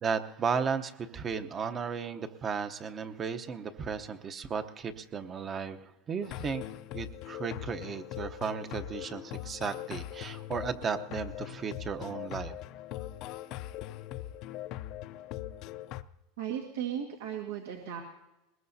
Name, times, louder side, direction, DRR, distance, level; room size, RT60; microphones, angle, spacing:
voice 1, 0.0-6.6 6.9-12.6, right 6 dB, 25° right, 9 dB, 0.8 m, -35 dB
sound 1, 6.2-16.0, left 13 dB, 50° left, 0.5 m, -41 dB
voice 2, 16.4-18.0, right 9 dB, 85° right, 1 dB, 1.7 m, -36 dB
21.5 x 20.0 x 2.7 m, 0.96 s
supercardioid pair, 135°, 0 cm